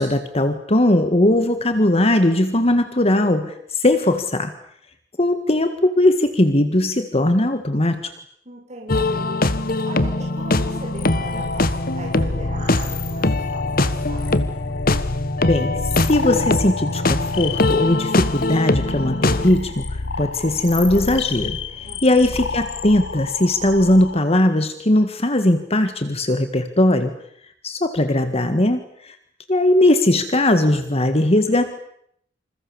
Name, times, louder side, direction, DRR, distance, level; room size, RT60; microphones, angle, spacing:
voice 1, 0.0-4.5 5.2-8.1 15.5-19.9 20.2-21.6 22.0-27.1 27.6-29.1 29.5-31.8, left 1 dB, 35° left, 9 dB, 1.7 m, -19 dB
voice 2, 8.5-9.4 9.9-14.6 21.8-22.3, right 1 dB, 40° right, -2 dB, 7.2 m, -38 dB
sound 1, 8.9-19.5, left 2 dB, 50° left, 1.4 m, -22 dB
sound 2, 10.4-24.2, left 4 dB, 80° left, 1.3 m, -31 dB
27.5 x 27.5 x 7.1 m, 0.69 s
head